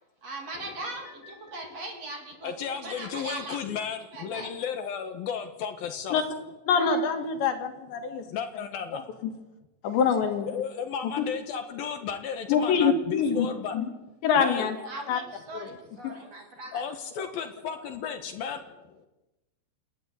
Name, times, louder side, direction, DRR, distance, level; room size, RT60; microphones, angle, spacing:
voice 1, 0.2-3.7 4.1-4.6 14.8-16.9 17.7-17.9, right 2 dB, 40° right, 3 dB, 3.7 m, -40 dB
voice 2, 2.4-6.2 8.0-9.3 10.5-13.8 14.4-14.9 16.7-19.1, left 7 dB, 65° left, 7 dB, 3.0 m, -34 dB
voice 3, 6.7-8.2 9.8-10.6 12.5-13.5 13.7-13.9 14.2-14.8 15.1-15.2 15.6-15.7, left 6 dB, 85° left, 6 dB, 4.5 m, -24 dB
29.5 x 13.0 x 9.5 m, 1.0 s
omnidirectional pair, 5.0 m